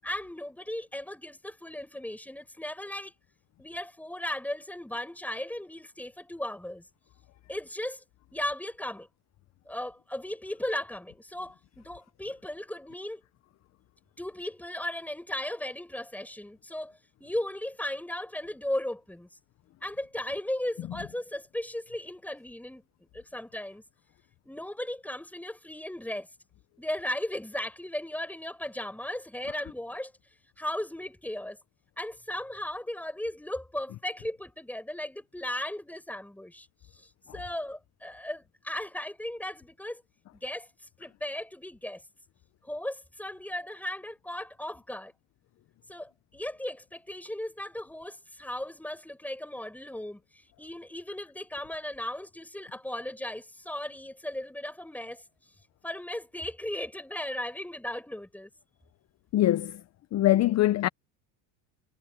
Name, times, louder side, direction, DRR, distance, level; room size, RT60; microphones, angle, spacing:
voice 1, 0.0-3.1 3.6-6.8 7.5-8.0 8.3-9.1 9.7-13.2 14.2-19.3 19.8-23.8 24.4-26.3 26.8-30.1 30.6-31.6 32.0-36.7 36.9-40.0 40.4-40.7 41.0-42.0 42.6-45.1 45.9-50.2 50.6-55.2 55.8-58.5, left 1 dB, 5° left, 7.3 m, -36 dB
voice 2, 59.3-59.8 60.1-60.9, left 14 dB, 40° left, 0.8 m, -23 dB
supercardioid pair, 110°, 42 cm